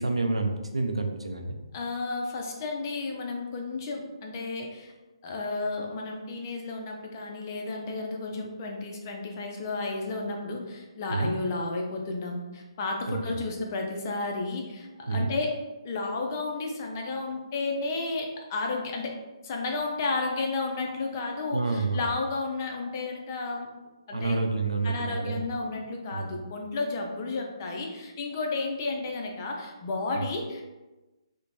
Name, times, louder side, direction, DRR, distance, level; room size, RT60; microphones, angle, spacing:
voice 1, 0.0-1.6 11.1-11.3 13.1-13.2 15.1-15.3 21.5-22.0 24.1-25.4 26.1-26.3 30.2-30.3, right 3 dB, 80° right, 4 dB, 0.4 m, -28 dB
voice 2, 1.7-4.9 5.2-15.5 15.8-19.1 19.4-23.7 24.1-24.4 24.8-30.6, left 3 dB, 35° left, 1 dB, 0.4 m, -32 dB
2.5 x 2.1 x 3.0 m, 1.1 s
figure-of-eight pair, 135°, 3 cm